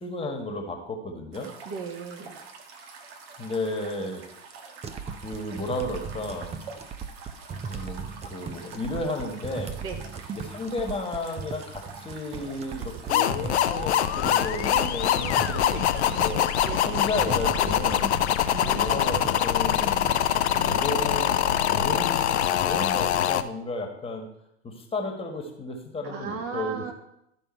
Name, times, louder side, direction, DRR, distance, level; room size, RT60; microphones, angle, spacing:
voice 1, 0.0-1.5 3.4-4.2 5.2-6.5 7.7-9.8 10.4-16.4 16.8-21.4 21.7-22.2 22.5-24.3 24.6-26.8, left 2 dB, 15° left, 3 dB, 1.5 m, -33 dB
sound 1, 1.3-21.2, right 4 dB, 55° right, 1.5 m, -46 dB
voice 2, 1.6-2.3 9.8-10.0 16.6-17.1 18.4-19.1 26.0-26.9, right 5 dB, 40° right, 3 dB, 1.7 m, -36 dB
sound 2, 4.8-20.3, right 6 dB, 20° right, 0.7 m, -38 dB
sound 3, 13.1-23.4, left 10 dB, 70° left, 0.7 m, -24 dB
12.5 x 5.4 x 4.4 m, 0.81 s
figure-of-eight pair, 85°, 35 cm